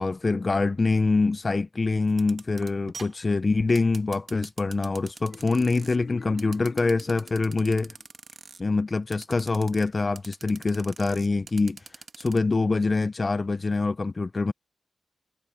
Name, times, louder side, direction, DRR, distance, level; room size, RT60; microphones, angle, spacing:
voice 1, 0.0-8.0 8.6-11.9 12.2-14.5, left 3 dB, 35° left, 0.4 m, -25 dB
sound 1, 2.1-6.0 6.4-8.6 9.1-9.9 10.2-12.4, right 4 dB, 50° right, 1.2 m, -44 dB
Marimba xylophone, 5.3-8.1, left 5 dB, 75° left, 1.5 m, -45 dB
wide cardioid pair, 130°, 0 cm